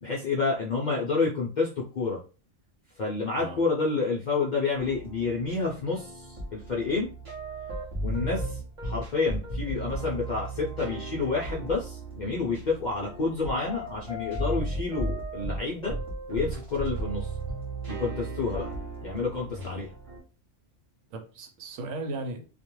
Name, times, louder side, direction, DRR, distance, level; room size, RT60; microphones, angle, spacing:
voice 1, 0.0-2.2 3.0-7.1 8.0-16.0 16.3-17.3 17.8-18.7 19.0-19.9, left 4 dB, 60° left, 0.4 m, -29 dB
sound 1, 4.7-20.2, right 2 dB, 35° right, 0.6 m, -35 dB
voice 2, 21.1-22.5, right 2 dB, 90° right, 1.0 m, -37 dB
2.4 x 2.1 x 2.9 m
omnidirectional pair, 1.3 m